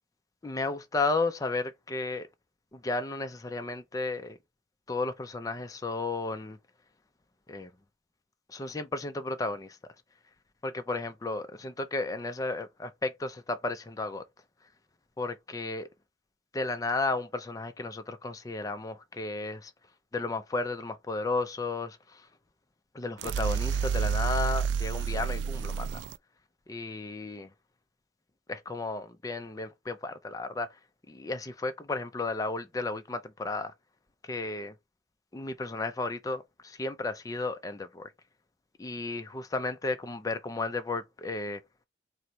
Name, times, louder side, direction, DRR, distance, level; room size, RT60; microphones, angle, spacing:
voice 1, 0.4-2.3 2.7-4.4 4.9-6.6 7.5-7.7 8.5-9.8 10.6-14.2 15.2-15.9 16.5-19.7 20.1-22.3 22.9-26.0 26.7-27.5 28.5-30.7 31.1-33.7 34.3-34.7 35.3-38.1 38.8-41.6, left 3 dB, 20° left, 0.4 m, -33 dB
sound 1, 23.2-26.2, right 6 dB, 90° right, 0.3 m, -29 dB
3.9 x 2.1 x 4.4 m
head